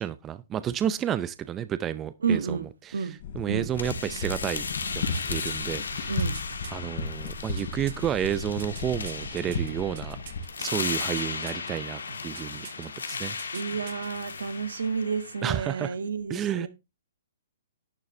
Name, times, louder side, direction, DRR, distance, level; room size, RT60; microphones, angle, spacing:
voice 1, 0.0-2.6 2.8-3.1 3.3-4.7 4.9-6.1 6.7-10.2 10.6-13.4 15.4-15.9 16.3-16.7, right 10 dB, 20° right, 0.6 m, -31 dB
voice 2, 2.2-2.7 2.9-3.2 3.5-3.7 6.1-6.4 13.5-16.7, right 5 dB, 80° right, 1.6 m, -30 dB
sound 1, 3.2-10.4, left 3 dB, 55° left, 3.5 m, -35 dB
sound 2, 3.7-15.7, left 5 dB, 90° left, 1.6 m, -36 dB
sound 3, 4.9-6.7 7.3-10.5 10.7-11.7 12.1-12.9 13.1-14.1 14.4-14.5, right 9 dB, 60° right, 1.8 m, -45 dB
11.5 x 9.4 x 3.3 m
hypercardioid pair, 140°, 0 cm